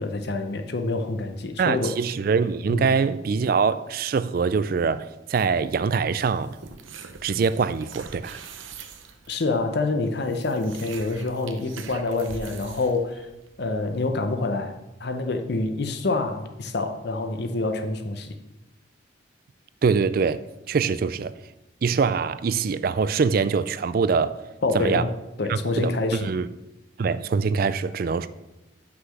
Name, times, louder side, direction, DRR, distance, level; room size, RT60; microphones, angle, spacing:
voice 1, 0.0-1.9 2.7-2.9 9.3-13.3 13.6-18.3 24.6-25.1 25.4-26.3, left 2 dB, 55° left, 0.7 m, -27 dB
voice 2, 1.6-6.6 7.2-8.4 19.8-20.4 20.7-21.3 21.8-24.4 24.7-25.1 25.5-26.5 27.0-28.3, right 5 dB, 50° right, 0.3 m, -24 dB
sound 1, 5.3-14.1, right 5 dB, 80° right, 0.8 m, -44 dB
6.0 x 5.8 x 6.3 m
head